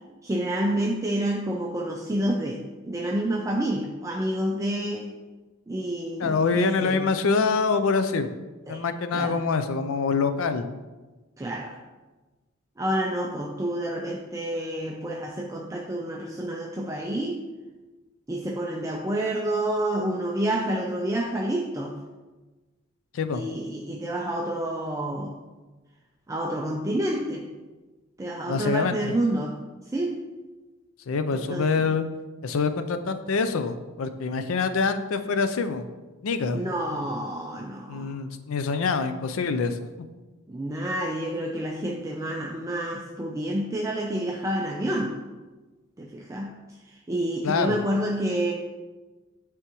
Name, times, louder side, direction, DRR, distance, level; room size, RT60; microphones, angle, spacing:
voice 1, 0.2-5.2 5.7-7.0 8.7-8.8 9.1-9.4 11.4-11.8 12.8-17.5 18.3-22.0 23.3-25.4 26.3-27.5 28.2-29.6 29.9-30.2 31.3-31.9 36.5-38.1 40.5-45.2 46.0-46.6 46.9-48.5, right 1 dB, 15° right, 0 dB, 0.4 m, -29 dB
voice 2, 6.2-8.3 8.7-10.7 23.1-23.4 28.5-29.1 31.1-32.1 32.4-35.9 36.2-37.0 37.9-39.8 47.4-47.8, left 4 dB, 80° left, 10 dB, 0.4 m, -25 dB
9.7 x 3.5 x 3.0 m, 1.2 s
head